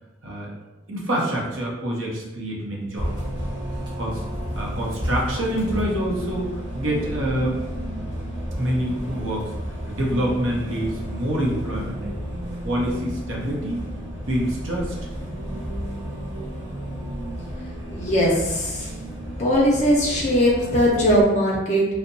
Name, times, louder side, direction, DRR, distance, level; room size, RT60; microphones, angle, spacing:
voice 1, 0.2-0.5 0.9-3.1 4.0-4.2 4.5-7.6 8.5-9.5 9.9-13.8 14.2-15.0, right 1 dB, 80° right, -3 dB, 0.7 m, -26 dB
Bus, 3.0-21.2, equal, 20° right, 0.7 m, -32 dB
voice 2, 17.9-18.9 19.4-21.9, equal, 35° left, -3 dB, 0.4 m, -20 dB
2.7 x 2.1 x 2.5 m, 1.0 s
head